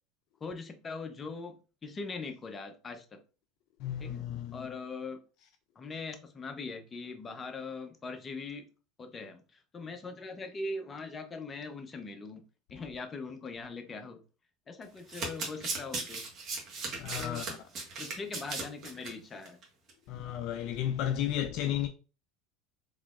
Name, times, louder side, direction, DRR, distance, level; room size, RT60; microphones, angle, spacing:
voice 1, 0.4-1.6 1.8-3.2 4.0-5.2 5.8-8.7 9.0-12.4 12.7-14.2 14.7-16.3 17.1-17.5 18.0-19.6, left 3 dB, 25° left, 0.7 m, -41 dB
voice 2, 3.8-4.6 17.0-17.4 20.1-21.9, left 11 dB, 60° left, 0.4 m, -33 dB
Domestic sounds home sounds, 14.8-19.1 19.4-19.6 19.9-20.0, right 3 dB, 45° right, 1.5 m, -37 dB
3.8 x 3.1 x 2.4 m
hypercardioid pair, 80°, 0 cm